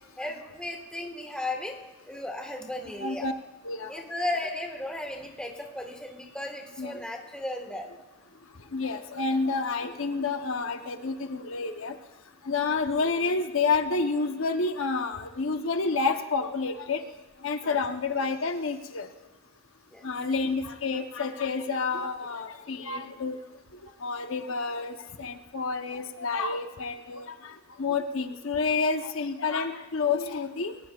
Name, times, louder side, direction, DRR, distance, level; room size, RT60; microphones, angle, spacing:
voice 1, 0.2-1.7 2.0-3.3 3.9-7.9 17.6-17.8 19.9-20.0, left 1 dB, 5° left, 1 dB, 1.4 m, -35 dB
voice 2, 3.0-3.3 3.6-3.9 6.8-7.0 8.7-11.9 12.5-17.0 17.4-19.1 20.0-23.4 24.0-27.4 27.8-30.7, left 4 dB, 75° left, 7 dB, 0.8 m, -29 dB
21.5 x 19.0 x 2.4 m, 1.1 s
head